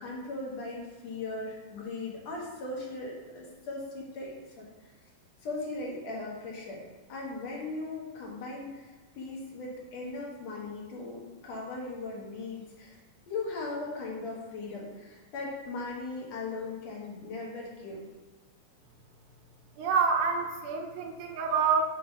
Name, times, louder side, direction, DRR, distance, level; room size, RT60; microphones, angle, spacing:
voice 1, 0.0-4.7 5.4-6.8 7.1-12.9 13.3-18.0, left 3 dB, 60° left, -3 dB, 2.5 m, -38 dB
voice 2, 19.8-21.8, right 5 dB, 80° right, 4 dB, 2.3 m, -27 dB
7.3 x 3.1 x 5.6 m, 1.3 s
omnidirectional pair, 3.5 m